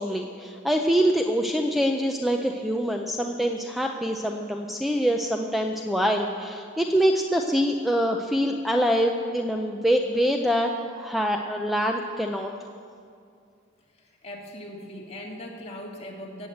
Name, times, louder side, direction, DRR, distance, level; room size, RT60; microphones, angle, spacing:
voice 1, 0.0-12.5, equal, ahead, 3 dB, 0.5 m, -25 dB
voice 2, 13.9-16.5, left 1 dB, 30° left, -1 dB, 2.0 m, -40 dB
18.0 x 8.1 x 7.9 m, 2.4 s
head